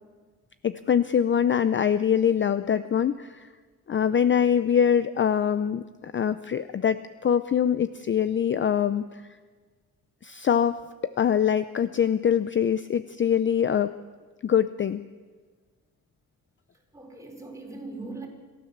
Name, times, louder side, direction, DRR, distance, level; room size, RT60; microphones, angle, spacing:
voice 1, 0.6-3.5 3.9-9.2 10.2-13.9 14.4-15.0, left 8 dB, 35° left, 13 dB, 0.5 m, -24 dB
voice 2, 16.7-18.3, right 3 dB, 10° right, 1 dB, 4.2 m, -40 dB
27.5 x 13.0 x 7.3 m, 1.4 s
wide cardioid pair, 135°, 35 cm